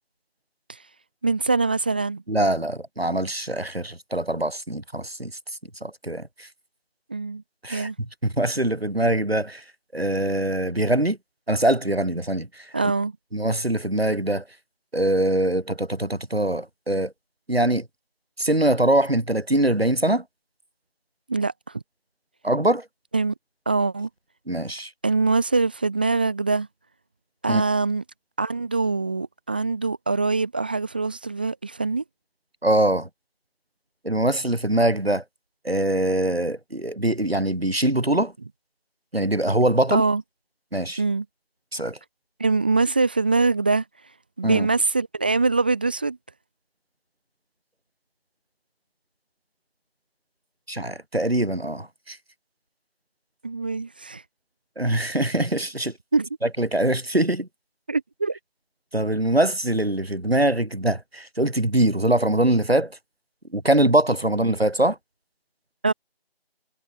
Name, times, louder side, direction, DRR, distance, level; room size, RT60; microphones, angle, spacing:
voice 1, 1.2-2.2 7.1-7.4 7.7-7.9 12.7-13.1 21.3-21.8 23.1-23.3 23.7-24.1 25.0-26.7 27.4-28.0 28.4-32.0 39.9-40.2 41.0-41.2 42.4-43.8 44.4-46.2 53.4-54.2 56.1-56.3 57.9-58.4 65.8-65.9, right 3 dB, 10° right, 1.1 m, -23 dB
voice 2, 2.3-5.3 5.8-6.5 7.6-9.6 9.9-11.2 11.5-12.7 13.3-14.4 14.9-17.1 17.5-17.9 18.4-20.2 22.4-22.9 24.5-24.9 27.5-27.6 32.6-33.1 34.0-35.2 35.6-38.3 39.1-40.0 40.7-41.0 41.7-42.0 44.4-44.7 50.7-52.2 54.8-55.9 56.4-57.5 58.9-63.0 63.5-65.0, right 1 dB, 85° right, 4.5 m, -23 dB
figure-of-eight pair, 165°, 30 cm